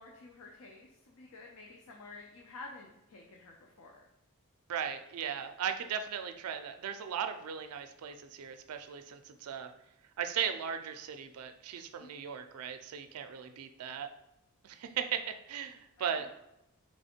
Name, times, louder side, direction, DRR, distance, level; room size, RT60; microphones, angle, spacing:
voice 1, 0.0-4.1 12.0-12.1 16.0-16.3, left 3 dB, 85° left, 0 dB, 0.6 m, -51 dB
voice 2, 4.7-9.7 10.2-14.1 14.6-16.3, right 8 dB, 80° right, 8 dB, 0.4 m, -37 dB
3.5 x 3.3 x 4.2 m, 0.85 s
head